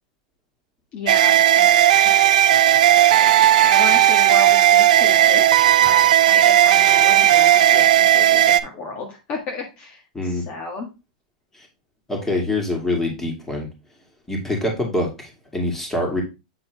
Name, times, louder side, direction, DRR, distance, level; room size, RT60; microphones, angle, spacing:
voice 1, 0.9-1.7 2.0-2.3 3.1-5.5 5.8-10.9, left 3 dB, 35° left, 1 dB, 1.6 m, -33 dB
sound 1, 1.1-8.6, right 11 dB, 75° right, 0.5 m, -14 dB
voice 2, 12.1-13.7 14.3-16.2, left 1 dB, 10° left, 1 dB, 2.3 m, -25 dB
7.9 x 3.9 x 3.4 m, 0.27 s
hypercardioid pair, 135°, 4 cm